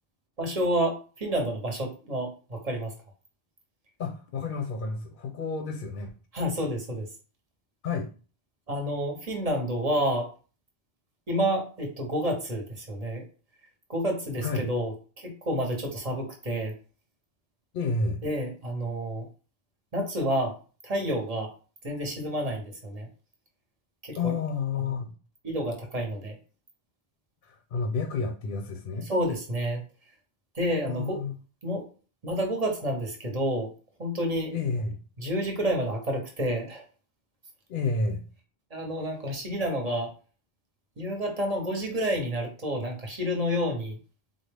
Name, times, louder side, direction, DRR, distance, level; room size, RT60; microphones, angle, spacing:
voice 1, 0.4-2.9 6.3-7.1 8.7-10.3 11.3-13.2 13.9-16.8 18.2-19.3 19.9-20.6 20.8-21.5 21.8-23.1 24.0-24.3 24.9-25.0 25.4-26.4 29.0-29.8 30.5-31.2 31.6-31.9 32.2-33.7 34.0-34.6 35.2-36.9 38.7-40.1 41.0-44.0, equal, 40° right, 1 dB, 0.8 m, -29 dB
voice 2, 4.0-6.1 7.8-8.1 14.4-14.7 17.7-18.2 24.1-25.1 27.4-29.1 30.9-31.3 34.5-34.9 37.7-38.2, left 4 dB, 60° left, 4 dB, 0.7 m, -30 dB
3.8 x 2.1 x 3.3 m, 0.36 s
omnidirectional pair, 1.0 m